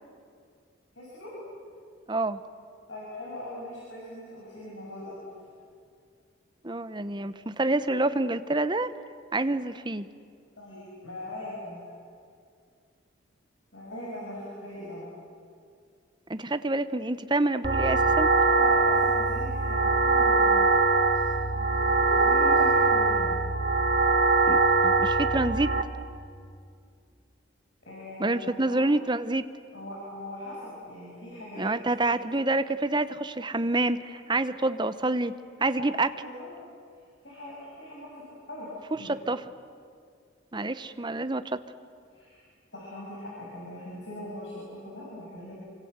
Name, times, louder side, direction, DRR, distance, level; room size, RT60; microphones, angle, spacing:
voice 1, 0.9-1.3 2.9-5.1 10.6-11.8 13.7-15.1 18.5-20.6 21.1-23.4 27.9-28.8 29.7-31.7 32.1-32.2 35.6-35.9 36.2-36.5 37.2-38.2 38.5-39.1 42.1-42.4 42.7-45.5, left 1 dB, 70° left, -5 dB, 6.9 m, -40 dB
voice 2, 2.1-2.4 6.6-8.9 9.3-10.1 16.3-18.3 24.5-25.7 28.2-29.5 31.6-35.3 35.6-36.1 39.0-39.4 40.5-41.6, right 2 dB, 25° right, 12 dB, 0.8 m, -27 dB
sound 1, 17.6-25.8, right 3 dB, 50° right, 1.1 m, -22 dB
27.0 x 25.0 x 8.1 m, 2.3 s
head